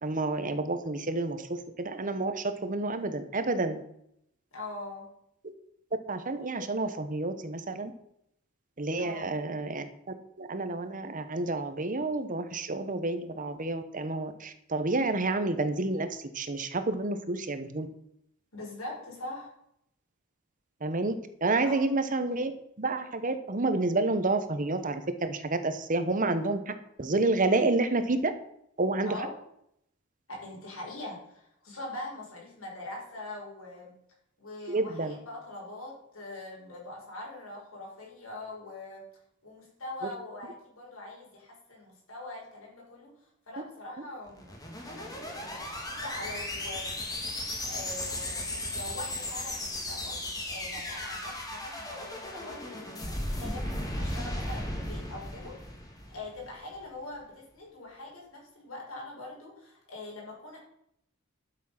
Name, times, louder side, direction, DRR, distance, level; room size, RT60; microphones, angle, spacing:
voice 1, 0.0-3.8 6.1-7.9 8.8-9.9 10.4-17.9 20.8-21.1 21.4-22.5 22.8-26.7 27.0-28.3 28.8-29.2 34.7-35.1, right 2 dB, 40° right, 10 dB, 1.1 m, -29 dB
voice 2, 4.5-5.1 9.0-9.3 18.5-19.5 21.6-21.9 29.1-29.3 30.3-33.9 34.4-39.0 39.4-43.1 43.5-44.5 44.8-47.2 47.6-55.6 56.1-60.6, left 2 dB, 85° left, -2 dB, 5.7 m, -43 dB
sound 1, 44.3-56.6, left 1 dB, 20° left, 2.3 m, -36 dB
12.0 x 7.4 x 5.9 m, 0.75 s
head